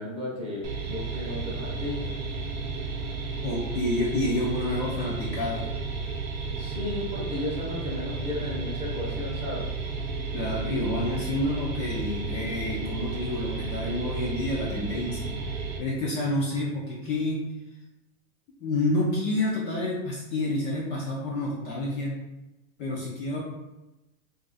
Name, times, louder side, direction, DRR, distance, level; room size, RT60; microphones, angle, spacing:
voice 1, 0.0-2.2 6.6-9.7, left 2 dB, 15° right, -5 dB, 0.8 m, -34 dB
sound 1, 0.6-15.8, right 4 dB, 35° right, 0.4 m, -33 dB
voice 2, 3.4-5.6 10.3-17.5 18.6-22.2 22.8-23.4, left 1 dB, 30° left, -5 dB, 0.5 m, -29 dB
2.5 x 2.4 x 4.0 m, 0.98 s
supercardioid pair, 145°, 40 cm